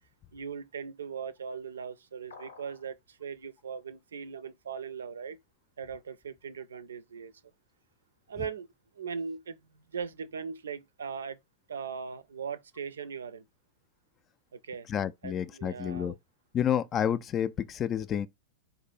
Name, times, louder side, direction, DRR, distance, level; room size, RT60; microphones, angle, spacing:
voice 1, 0.3-5.4 5.8-7.3 8.3-8.7 8.9-11.4 11.7-13.4 14.5-14.9 15.2-16.2, right 6 dB, 70° right, 0.5 m, -39 dB
sound 1, 2.3-2.9, left 5 dB, 70° left, 0.8 m, -49 dB
voice 2, 14.9-16.1 16.5-18.3, left 9 dB, 30° left, 0.4 m, -29 dB
4.2 x 2.6 x 4.2 m
figure-of-eight pair, 90°, 0 cm